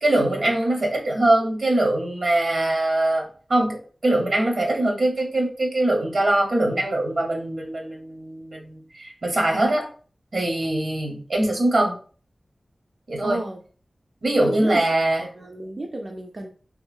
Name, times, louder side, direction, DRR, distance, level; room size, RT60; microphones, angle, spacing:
voice 1, 0.0-9.9 10.3-11.9 13.1-13.4 14.2-15.2, right 1 dB, 70° right, 0 dB, 0.9 m, -22 dB
voice 2, 11.5-11.9 13.2-13.6 14.4-14.8 15.2-16.5, right 2 dB, 50° right, 1 dB, 0.4 m, -33 dB
2.9 x 2.7 x 2.5 m, 0.40 s
wide cardioid pair, 95°, 0 cm